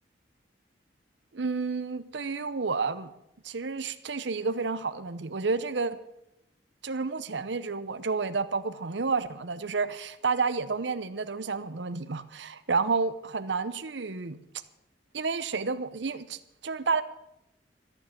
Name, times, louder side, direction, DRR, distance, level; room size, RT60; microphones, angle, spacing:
voice 1, 1.3-3.1 3.4-6.0 6.8-14.4 15.1-17.0, right 4 dB, 70° right, 12 dB, 0.8 m, -30 dB
13.5 x 9.2 x 8.5 m, 0.82 s
head